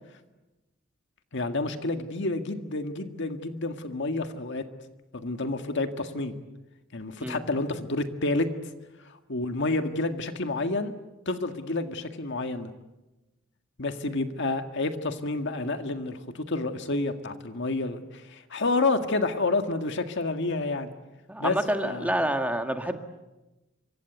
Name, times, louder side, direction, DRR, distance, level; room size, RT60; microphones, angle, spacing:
voice 1, 1.3-4.7 5.1-6.4 6.9-8.5 9.3-10.9 11.3-12.7 13.8-20.9 21.4-21.6 21.8-22.1, left 2 dB, 60° left, 7 dB, 1.8 m, -29 dB
voice 2, 21.3-23.0, right 1 dB, 5° right, 6 dB, 1.7 m, -28 dB
27.0 x 24.5 x 8.2 m, 1.1 s
head